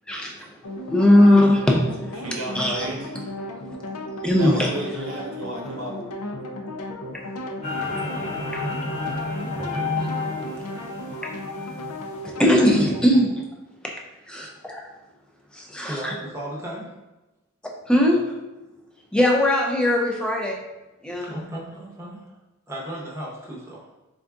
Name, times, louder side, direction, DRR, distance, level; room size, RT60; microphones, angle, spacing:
voice 1, 0.1-0.5 0.9-2.2 2.5-2.9 4.2-4.7 9.6-10.6 12.2-13.3 13.8-14.0 14.3-14.8 15.5-16.2 17.9-18.3 19.1-20.6 21.0-21.3, left 1 dB, 5° left, 0 dB, 0.3 m, -20 dB
sound 1, 0.6-13.0, left 1 dB, 80° left, 0.5 m, -35 dB
voice 2, 1.1-1.5 2.2-3.1 4.4-6.0 18.1-18.2, right 1 dB, 65° right, -2 dB, 0.9 m, -33 dB
sound 2, 7.6-12.2, left 3 dB, 30° left, 0.7 m, -30 dB
voice 3, 15.8-16.9 21.2-22.3 22.7-23.9, right 1 dB, 10° right, -4 dB, 0.7 m, -35 dB
3.7 x 2.4 x 3.5 m, 1.0 s
head